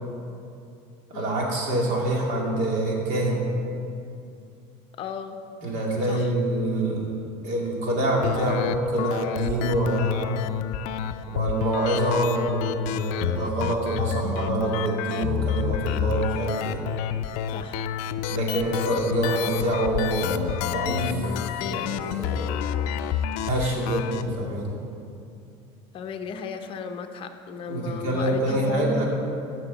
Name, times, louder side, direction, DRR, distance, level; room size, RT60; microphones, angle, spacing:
voice 1, 1.1-3.4 5.6-7.1 7.4-10.4 11.3-16.8 18.3-22.5 23.4-24.7 27.7-29.1, right 1 dB, 60° right, -2 dB, 2.4 m, -26 dB
voice 2, 5.0-5.4 6.1-6.2 17.5-17.8 25.9-29.0, left 5 dB, 40° left, 6 dB, 0.7 m, -35 dB
sound 1, 8.2-24.2, left 9 dB, 70° left, 0.4 m, -29 dB
15.5 x 6.1 x 4.0 m, 2.5 s
cardioid pair, 140°, 14 cm